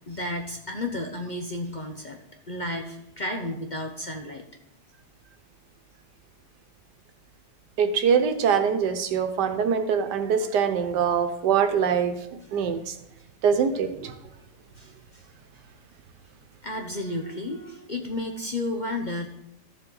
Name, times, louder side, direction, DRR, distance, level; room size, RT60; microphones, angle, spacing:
voice 1, 0.1-2.2 2.5-4.4 14.8-15.2 16.6-19.3, left 1 dB, 40° left, 3 dB, 0.7 m, -32 dB
voice 2, 7.8-12.2 12.5-13.0 13.4-14.1, right 7 dB, 85° right, 8 dB, 1.5 m, -23 dB
13.0 x 7.2 x 3.9 m, 0.81 s
omnidirectional pair, 1.8 m